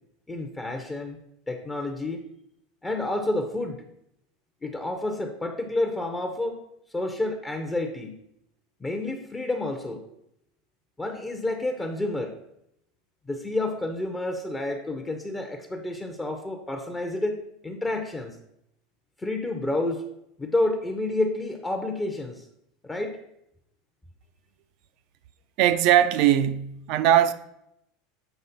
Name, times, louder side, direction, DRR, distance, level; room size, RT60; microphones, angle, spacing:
voice 1, 0.3-1.2 1.5-2.2 2.8-3.8 4.6-6.6 6.9-8.2 8.8-10.0 11.0-12.3 13.3-18.4 19.2-20.0 20.4-22.5 22.8-23.2, left 2 dB, 10° left, 0.7 m, -29 dB
voice 2, 25.6-27.3, right 11 dB, 55° right, 0.5 m, -20 dB
7.9 x 5.0 x 4.1 m
supercardioid pair, 130°, 0 cm